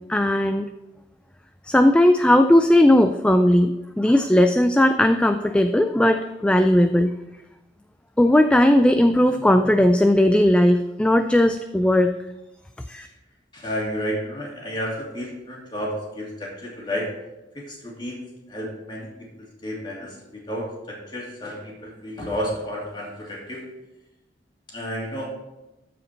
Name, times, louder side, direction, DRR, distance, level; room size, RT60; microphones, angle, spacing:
voice 1, 0.1-0.7 1.7-7.1 8.2-12.1 12.9-13.1, left 1 dB, 5° left, 7 dB, 0.3 m, -17 dB
voice 2, 13.5-17.1 17.5-18.2 18.5-19.1 19.6-23.6 24.7-25.3, equal, 25° left, -3 dB, 2.7 m, -31 dB
13.5 x 5.1 x 4.5 m, 0.98 s
head